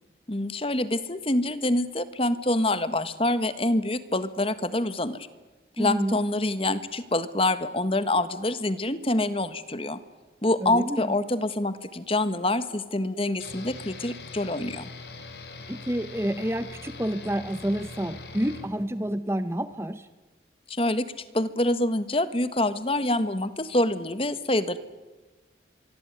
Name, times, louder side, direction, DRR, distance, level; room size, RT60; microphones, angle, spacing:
voice 1, 0.3-5.2 5.8-10.0 10.4-14.9 20.7-21.1 21.3-24.8, left 1 dB, 30° left, 13 dB, 1.5 m, -26 dB
voice 2, 5.8-6.2 10.6-11.1 15.7-20.1, equal, 15° right, 12 dB, 0.9 m, -29 dB
sound 1, 13.4-18.7, left 3 dB, 65° left, 4.5 m, -42 dB
25.5 x 23.5 x 9.6 m, 1.2 s
head